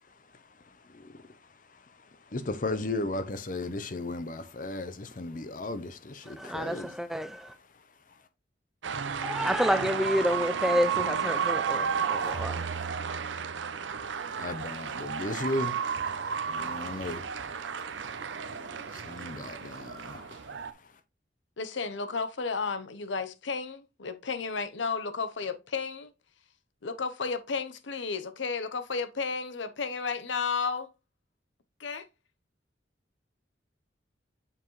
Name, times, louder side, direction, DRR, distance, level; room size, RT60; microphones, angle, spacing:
voice 1, 2.3-6.9 14.4-15.8 16.5-17.2 18.9-20.3, left 2 dB, 45° left, 0.7 m, -35 dB
voice 2, 6.3-7.5 9.2-12.7, equal, ahead, 0.4 m, -29 dB
sound 1, 8.8-20.7, right 6 dB, 80° right, 0.6 m, -33 dB
voice 3, 21.6-26.1 26.8-30.9 31.8-32.0, left 5 dB, 85° left, 0.8 m, -33 dB
7.0 x 5.8 x 3.1 m
head